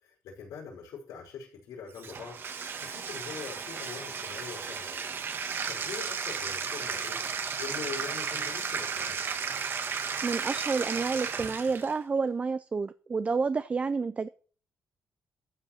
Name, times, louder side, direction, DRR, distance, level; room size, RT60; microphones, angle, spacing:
voice 1, 0.0-2.4 2.8-5.2 5.4-7.2 7.6-9.2, left 6 dB, 85° left, -3 dB, 5.2 m, -43 dB
Bathtub (filling or washing), 2.0-12.0, right 6 dB, 40° right, 1.4 m, -34 dB
voice 2, 10.2-14.3, right 4 dB, 25° right, 13 dB, 0.5 m, -29 dB
14.0 x 5.3 x 7.2 m, 0.41 s
cardioid pair, 140°, 6 cm